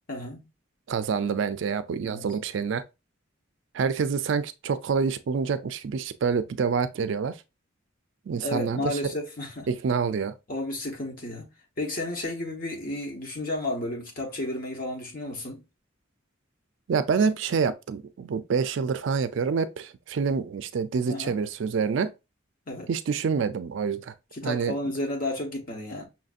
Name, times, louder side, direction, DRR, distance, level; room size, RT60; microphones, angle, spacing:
voice 1, 0.1-0.4 2.0-2.3 8.4-9.7 10.5-11.5 11.8-15.6 21.1-21.3 22.7-22.9 24.3-26.0, left 1 dB, 45° left, 1.1 m, -32 dB
voice 2, 0.9-2.8 3.7-7.4 8.3-9.0 9.7-10.3 16.9-22.1 22.9-24.1 24.4-24.7, right 5 dB, 65° right, 0.4 m, -27 dB
5.7 x 2.6 x 2.4 m
head